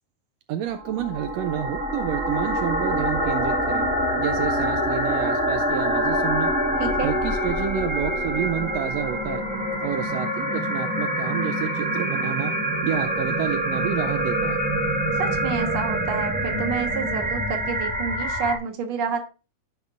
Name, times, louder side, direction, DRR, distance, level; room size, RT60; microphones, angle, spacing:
voice 1, 0.5-3.8 4.2-6.5 7.0-9.4 9.8-12.5 12.8-14.6, right 10 dB, 80° right, 8 dB, 1.5 m, -29 dB
sound 1, 0.7-18.6, equal, 10° right, 0.6 m, -25 dB
voice 2, 6.8-7.2 15.2-19.3, right 6 dB, 55° right, 5 dB, 1.8 m, -29 dB
14.5 x 5.5 x 2.4 m, 0.32 s
omnidirectional pair, 3.4 m